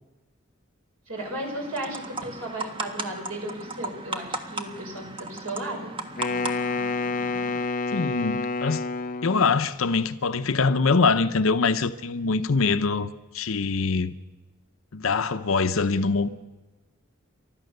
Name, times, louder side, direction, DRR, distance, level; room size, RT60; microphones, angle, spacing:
voice 1, 1.1-5.9, right 1 dB, 85° right, 5.8 m, -35 dB
sound 1, 1.2-7.6, right 2 dB, 25° right, 1.4 m, -36 dB
Wind instrument woodwind instrument, 6.2-9.6, left 3 dB, 40° left, 0.6 m, -28 dB
voice 2, 7.9-8.8 9.2-14.1 14.9-16.3, left 4 dB, 70° left, 0.8 m, -23 dB
29.0 x 13.0 x 6.7 m
head